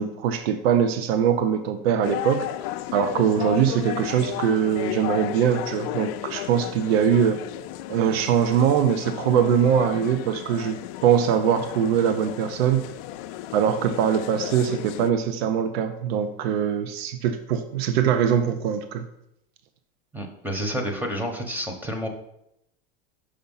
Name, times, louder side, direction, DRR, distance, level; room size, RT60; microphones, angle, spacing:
voice 1, 0.0-2.5 2.9-7.4 7.9-12.9 13.5-19.0, right 8 dB, 80° right, 10 dB, 0.6 m, -22 dB
sound 1, 2.0-15.1, left 14 dB, 55° left, 0.4 m, -34 dB
voice 2, 20.1-22.1, equal, 5° right, 4 dB, 1.1 m, -29 dB
5.6 x 5.0 x 5.5 m, 0.80 s
supercardioid pair, 130°, 30 cm